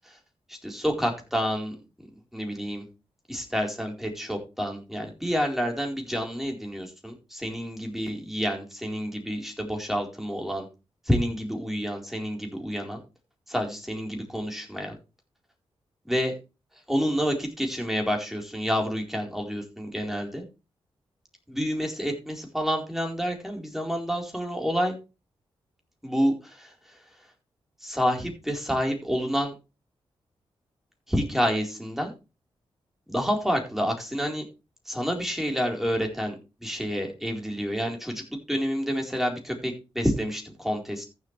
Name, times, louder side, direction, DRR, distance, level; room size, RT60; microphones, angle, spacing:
voice 1, 0.5-1.7 2.3-2.8 3.3-10.7 11.1-13.0 13.5-15.0 16.1-16.3 16.9-20.4 21.5-24.9 26.0-26.7 27.8-29.5 31.1-32.1 33.1-34.4 34.9-36.3 36.6-38.2 38.5-41.0, equal, 5° right, 2 dB, 4.3 m, -28 dB
14.5 x 7.9 x 3.4 m, 0.29 s
cardioid pair, 80°, 10 cm